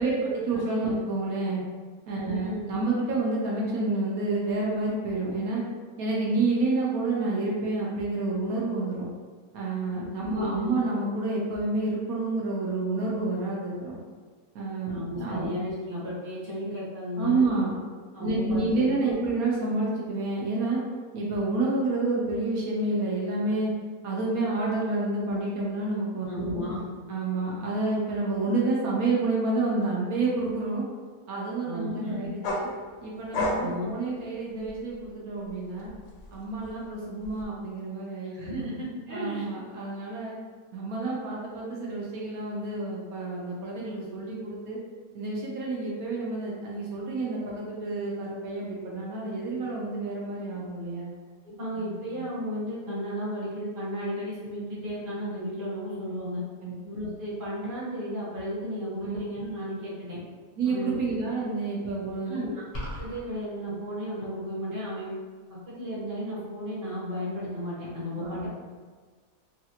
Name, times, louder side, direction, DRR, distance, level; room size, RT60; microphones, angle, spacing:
voice 1, 0.0-1.6 2.1-5.6 6.0-9.1 9.5-14.0 14.5-15.5 17.2-17.8 18.2-20.8 21.1-23.7 24.0-26.6 27.1-30.9 31.3-32.7 33.0-35.9 36.3-38.7 39.1-40.4 40.7-44.8 45.1-51.1 51.8-51.9 56.6-56.7 59.0-59.2 60.6-62.5 68.2-68.5, right 3 dB, 70° right, -4 dB, 1.0 m, -29 dB
voice 2, 2.2-2.8 9.9-10.7 14.9-17.5 18.1-19.1 26.3-26.8 31.6-32.3 33.6-33.9 38.3-39.5 51.4-56.4 56.8-60.2 60.7-61.0 62.2-62.6 63.0-65.1 65.7-68.5, equal, 20° right, -9 dB, 0.6 m, -34 dB
sound 1, 32.4-35.1 35.5-37.4, left 1 dB, 65° left, 0.7 m, -33 dB
sound 2, 62.7-63.2, equal, 30° left, 0.8 m, -35 dB
3.2 x 2.5 x 2.8 m, 1.5 s
omnidirectional pair, 1.7 m